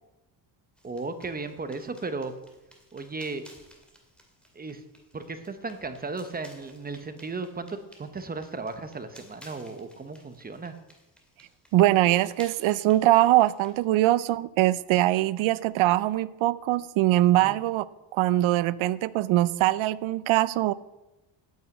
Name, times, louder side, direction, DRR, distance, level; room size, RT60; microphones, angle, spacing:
sound 1, 0.8-13.8, equal, ahead, 2.2 m, -56 dB
voice 1, 0.8-2.3 2.9-3.4 4.5-4.8 5.1-10.7 17.4-17.6, right 3 dB, 20° right, 9 dB, 0.9 m, -35 dB
voice 2, 11.7-17.8 18.1-20.7, right 15 dB, 75° right, 18 dB, 0.7 m, -22 dB
9.2 x 8.4 x 9.2 m, 1.0 s
cardioid pair, 160°, 47 cm